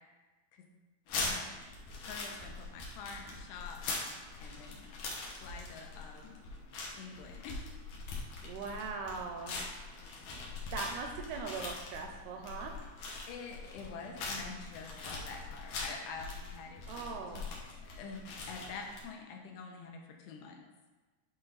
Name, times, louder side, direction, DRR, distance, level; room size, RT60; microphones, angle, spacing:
sound 1, 1.1-19.0, left 3 dB, 65° left, 2.1 m, -42 dB
voice 1, 1.2-1.7 2.0-3.8 4.4-4.8 5.4-6.4 7.0-7.7 13.3-17.2 17.8-18.2 18.5-20.6, left 5 dB, 85° left, 2 dB, 2.9 m, -46 dB
voice 2, 8.4-9.6 10.7-12.8 16.9-17.5, right 4 dB, 80° right, 3 dB, 2.3 m, -40 dB
10.5 x 3.9 x 4.0 m, 1.2 s
omnidirectional pair, 4.9 m